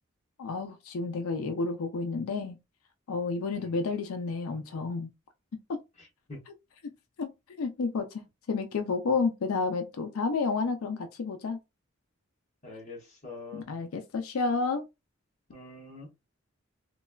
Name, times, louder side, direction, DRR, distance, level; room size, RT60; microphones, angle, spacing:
voice 1, 0.4-2.6 3.1-5.1 7.2-8.2 8.5-11.6 13.5-14.8, left 4 dB, 85° left, 0.4 m, -30 dB
voice 2, 6.0-6.4 12.6-13.6 15.5-16.1, left 3 dB, 35° left, 1.2 m, -45 dB
3.2 x 2.2 x 2.2 m
head